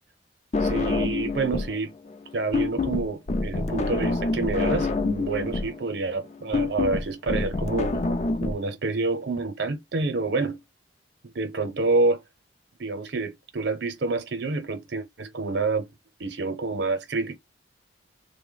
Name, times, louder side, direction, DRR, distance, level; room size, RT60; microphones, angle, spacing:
sound 1, 0.5-1.8 2.1-8.5, left 3 dB, 40° left, 0.4 m, -26 dB
voice 1, 0.6-1.9 2.3-8.0 8.4-10.6 11.2-12.2 12.8-15.9 16.2-17.4, right 3 dB, 75° right, 0.6 m, -28 dB
3.3 x 2.1 x 3.8 m
head